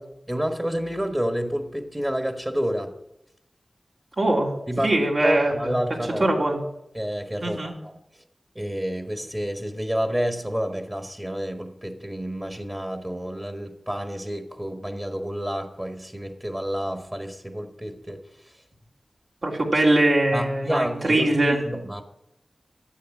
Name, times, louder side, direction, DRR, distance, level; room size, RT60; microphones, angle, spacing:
voice 1, 0.3-2.9 4.7-4.9 5.2-6.3 6.9-7.9 8.5-18.2 20.3-22.0, equal, 20° right, 5 dB, 1.4 m, -29 dB
voice 2, 4.2-4.5 4.8-5.7 6.2-6.6 7.4-7.7 19.4-21.6, right 1 dB, 70° right, -2 dB, 3.1 m, -21 dB
13.0 x 8.5 x 6.2 m, 0.81 s
cardioid pair, 45°, 0 cm